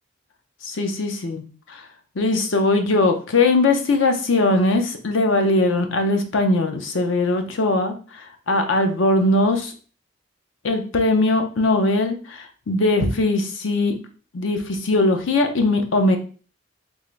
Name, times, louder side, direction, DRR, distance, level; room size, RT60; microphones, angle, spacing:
voice 1, 0.6-1.8 2.2-9.7 10.6-13.9 14.3-16.2, left 2 dB, 75° left, 5 dB, 0.6 m, -20 dB
3.6 x 2.5 x 3.1 m, 0.39 s
head